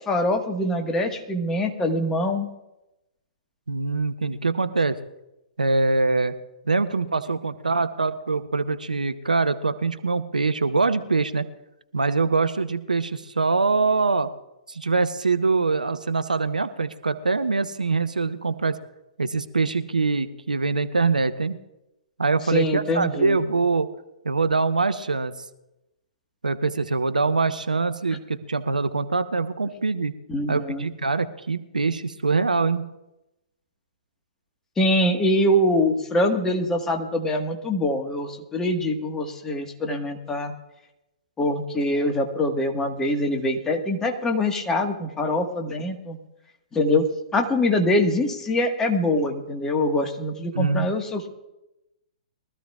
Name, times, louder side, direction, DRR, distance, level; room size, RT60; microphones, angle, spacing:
voice 1, 0.0-2.5 22.5-23.4 30.3-30.8 34.8-40.5 41.4-46.2 46.7-47.1 47.3-51.3, left 1 dB, 10° left, 3 dB, 1.6 m, -24 dB
voice 2, 3.7-5.0 5.6-6.3 6.6-11.5 11.9-14.3 14.7-18.8 19.2-21.6 22.2-23.9 24.2-25.3 26.4-30.1 30.5-32.9 50.5-50.9, right 3 dB, 75° right, 12 dB, 0.9 m, -23 dB
23.0 x 14.5 x 2.4 m, 0.94 s
figure-of-eight pair, 120°, 4 cm